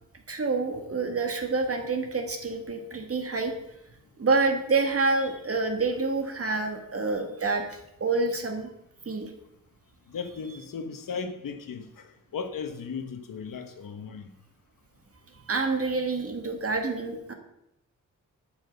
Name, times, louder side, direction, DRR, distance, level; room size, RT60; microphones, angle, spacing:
voice 1, 0.3-3.5 4.2-8.7 9.1-9.3 15.5-17.3, right 3 dB, 45° right, 5 dB, 1.9 m, -27 dB
voice 2, 10.1-14.3, left 5 dB, 80° left, 7 dB, 1.3 m, -36 dB
12.0 x 9.1 x 5.4 m, 0.82 s
wide cardioid pair, 105°, 33 cm